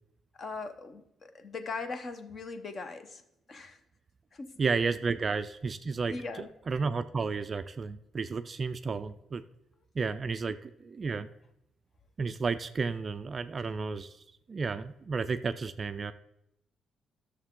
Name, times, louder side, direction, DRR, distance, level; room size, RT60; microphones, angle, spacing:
voice 1, 0.4-3.2 3.5-3.8 4.3-4.6 6.1-6.5, left 3 dB, 35° left, 9 dB, 0.8 m, -40 dB
voice 2, 4.6-9.4 9.9-11.3 12.2-16.1, right 4 dB, 30° right, 11 dB, 0.3 m, -32 dB
13.0 x 6.5 x 3.7 m, 0.83 s
cardioid pair, 160°, 0 cm